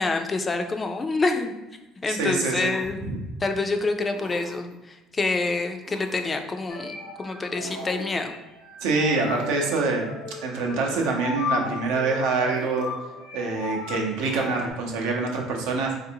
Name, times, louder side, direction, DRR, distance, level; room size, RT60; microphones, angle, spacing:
voice 1, 0.0-1.5 2.0-3.0 3.4-8.3, left 3 dB, 25° left, 5 dB, 0.3 m, -27 dB
voice 2, 2.1-2.7 3.1-3.2 8.8-10.2 10.4-12.9 13.3-15.9, right 3 dB, 90° right, 0 dB, 0.7 m, -25 dB
sound 1, 2.4-3.1 4.1-4.8 5.8-6.5 7.6-8.3 9.2-9.8 10.8-11.3 12.5-13.2 14.2-14.8, right 3 dB, 60° right, 0.7 m, -42 dB
sound 2, 6.7-14.7, left 4 dB, 80° left, 0.6 m, -36 dB
3.5 x 2.6 x 2.7 m, 1.0 s
cardioid pair, 110°, 0 cm